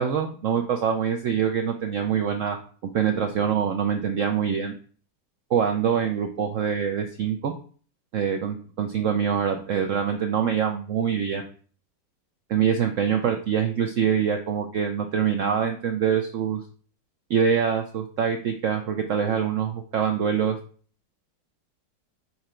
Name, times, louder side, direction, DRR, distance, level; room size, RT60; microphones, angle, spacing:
voice 1, 0.0-2.6 2.8-4.7 5.5-7.5 8.1-11.4 12.5-16.6 17.3-20.6, right 7 dB, 85° right, 5 dB, 0.6 m, -24 dB
5.7 x 3.8 x 4.3 m, 0.43 s
omnidirectional pair, 2.0 m